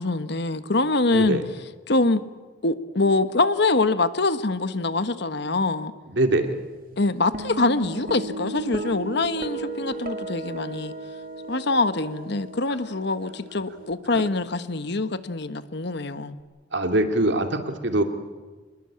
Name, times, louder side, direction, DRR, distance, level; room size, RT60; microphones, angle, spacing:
voice 1, 0.0-1.4 1.9-2.2 2.6-5.9 7.0-10.9 11.5-16.4, left 3 dB, 65° left, 11 dB, 1.3 m, -24 dB
voice 2, 1.1-1.4 6.1-6.6 14.1-14.2 16.7-18.0, right 1 dB, 70° right, 6 dB, 2.5 m, -23 dB
sound 1, 7.3-13.9, right 2 dB, 50° right, 2.2 m, -35 dB
26.5 x 21.5 x 8.7 m, 1.3 s
head